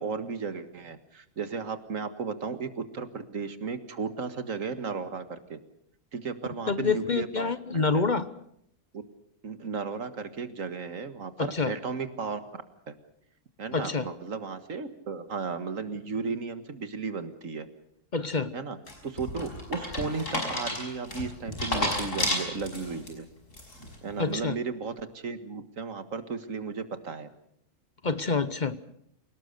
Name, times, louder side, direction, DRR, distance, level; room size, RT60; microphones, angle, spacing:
voice 1, 0.0-5.6 6.1-8.0 9.4-12.4 12.9-13.0 13.6-17.7 18.5-18.8 19.0-23.3 24.0-27.3, right 5 dB, 90° right, 9 dB, 2.0 m, -35 dB
voice 2, 6.7-8.3 11.4-11.7 13.7-14.1 18.1-18.5 24.2-24.5 28.0-28.8, left 4 dB, 40° left, 13 dB, 1.0 m, -27 dB
sound 1, 18.9-23.1 23.5-24.0, left 1 dB, 80° left, 6.1 m, -31 dB
28.0 x 18.5 x 6.8 m, 0.73 s
omnidirectional pair, 1.3 m